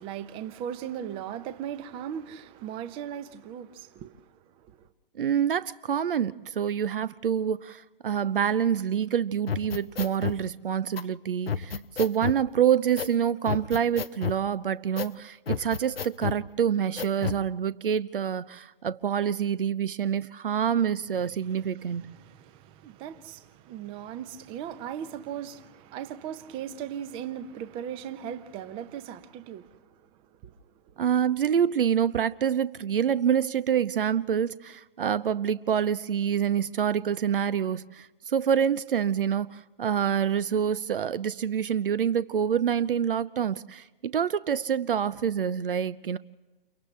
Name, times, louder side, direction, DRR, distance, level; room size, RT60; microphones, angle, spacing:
voice 1, 0.0-4.9 21.5-29.9 30.4-30.6, right 9 dB, 20° right, 0.8 m, -38 dB
voice 2, 5.2-22.1 31.0-46.2, right 8 dB, 65° right, 0.7 m, -26 dB
sound 1, 9.5-10.4 11.0-11.1 11.5-12.4 13.0-13.2 13.5-14.4 15.0-15.1 15.5-16.4 17.0-17.4, left 7 dB, 85° left, 0.8 m, -31 dB
30.0 x 28.5 x 3.3 m
figure-of-eight pair, 135°, 29 cm